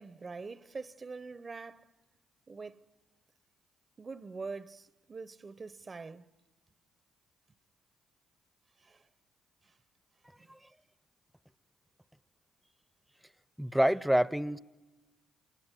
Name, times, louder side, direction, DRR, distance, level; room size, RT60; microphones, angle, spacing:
voice 1, 0.0-1.9 2.5-2.8 4.0-6.3 8.8-9.0 9.6-9.7 10.4-10.7, right 4 dB, 40° right, 0.9 m, -44 dB
voice 2, 13.6-14.6, equal, 5° right, 0.8 m, -26 dB
27.5 x 23.5 x 9.2 m
hypercardioid pair, 50°, 0 cm